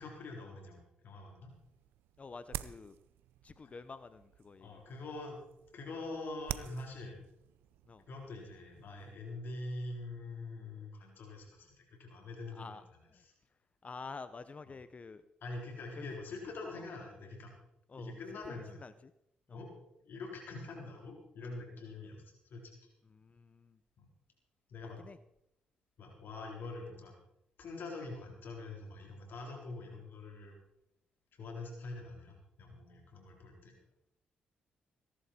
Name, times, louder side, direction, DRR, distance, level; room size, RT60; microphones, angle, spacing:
voice 1, 0.0-1.5 4.6-5.4 5.7-7.2 8.1-12.8 15.4-17.5 18.0-18.8 19.5-19.7 20.0-22.2 22.4-22.9 24.0-24.1 24.7-25.0 26.0-27.1 27.6-30.6 31.3-33.7, left 2 dB, 70° left, 1 dB, 3.9 m, -44 dB
sound 1, 1.5-9.2, right 13 dB, 90° right, 0.6 m, -48 dB
voice 2, 2.2-3.0 3.4-4.8 7.9-8.0 12.5-13.2 13.8-15.2 16.0-16.1 16.7-16.9 17.9-18.2 18.5-19.1 19.5-19.6 23.1-23.8 25.0-25.2, left 4 dB, 40° left, 13 dB, 0.8 m, -49 dB
20.5 x 11.5 x 4.3 m, 0.79 s
supercardioid pair, 60°, 4 cm